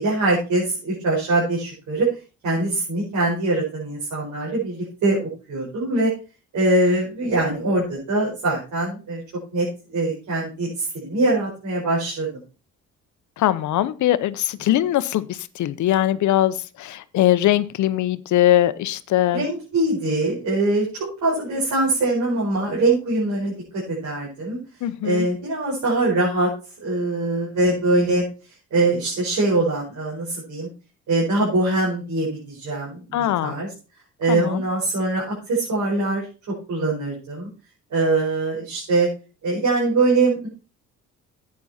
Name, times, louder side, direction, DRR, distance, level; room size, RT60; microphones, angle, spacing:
voice 1, 0.0-2.1 2.4-6.1 6.5-9.2 9.5-12.3 19.3-23.5 23.9-24.6 25.0-26.5 26.8-28.3 28.7-30.7 31.1-33.0 33.4-33.7 34.2-36.2 36.7-37.5 37.9-39.1 39.4-40.5, right 2 dB, 75° right, -5 dB, 5.0 m, -22 dB
voice 2, 13.4-19.4 24.8-25.3 33.1-33.5 34.3-34.6, left 13 dB, 75° left, 15 dB, 0.8 m, -21 dB
10.5 x 8.5 x 4.2 m, 0.34 s
cardioid pair, 90°, 30 cm